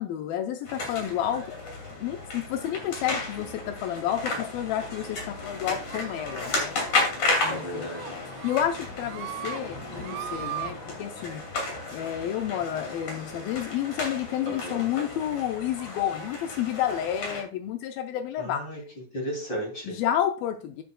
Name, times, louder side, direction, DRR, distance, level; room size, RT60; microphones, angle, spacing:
voice 1, 0.0-1.4 2.0-6.8 7.4-7.8 8.4-11.4 11.9-18.6 19.9-20.8, left 10 dB, 85° left, 7 dB, 2.1 m, -30 dB
sound 1, 0.7-17.4, left 3 dB, 50° left, 3.6 m, -33 dB
sound 2, 5.9-6.5 6.8-7.0 7.4-7.6 7.9-8.7 9.0-9.6 9.9-10.7, right 13 dB, 90° right, 2.8 m, -38 dB
voice 2, 7.0-8.2 14.4-14.9 18.4-18.8 19.1-20.0, equal, 30° left, 0 dB, 3.1 m, -35 dB
11.5 x 8.5 x 2.3 m, 0.36 s
omnidirectional pair, 4.9 m